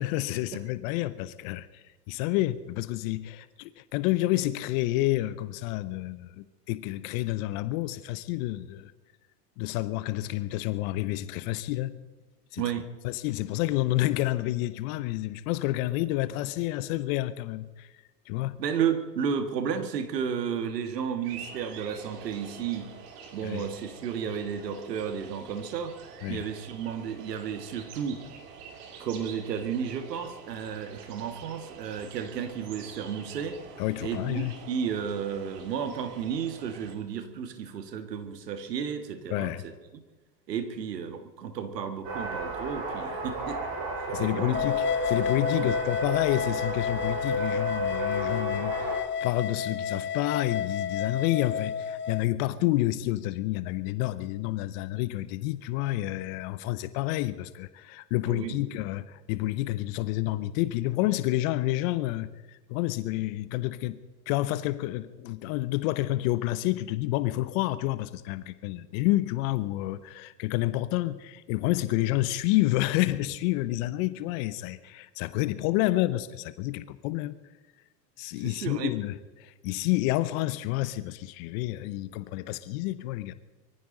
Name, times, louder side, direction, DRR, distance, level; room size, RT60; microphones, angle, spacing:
voice 1, 0.0-8.9 9.6-12.0 12.5-12.6 13.0-17.9 18.3-18.6 23.4-23.7 26.2-26.4 33.8-34.5 39.3-39.6 44.1-64.0 64.3-77.4 78.2-83.3, left 16 dB, 55° left, 1.0 m, -29 dB
voice 2, 12.6-12.9 18.6-22.9 23.3-26.0 26.3-28.2 29.0-33.6 34.0-40.0 40.5-43.6 44.2-44.6 45.6-45.7 58.3-58.6 78.4-78.9, right 7 dB, 80° right, 1.9 m, -33 dB
sound 1, 21.2-37.0, right 6 dB, 65° right, 3.1 m, -47 dB
sound 2, 42.0-49.0, right 1 dB, 50° right, 6.5 m, -32 dB
sound 3, 44.5-52.2, left 8 dB, 25° left, 0.8 m, -31 dB
23.0 x 15.0 x 3.9 m
hypercardioid pair, 90°, 48 cm